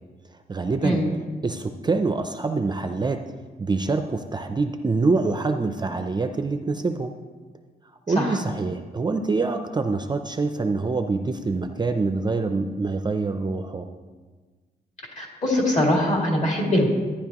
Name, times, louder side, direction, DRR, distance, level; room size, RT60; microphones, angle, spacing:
voice 1, 0.5-1.0 1.4-3.2 3.6-7.1 8.1-13.9, right 3 dB, 25° right, 7 dB, 0.4 m, -25 dB
voice 2, 15.2-16.9, left 1 dB, 45° left, -1 dB, 2.4 m, -22 dB
12.5 x 9.9 x 2.9 m, 1.4 s
wide cardioid pair, 135°, 17 cm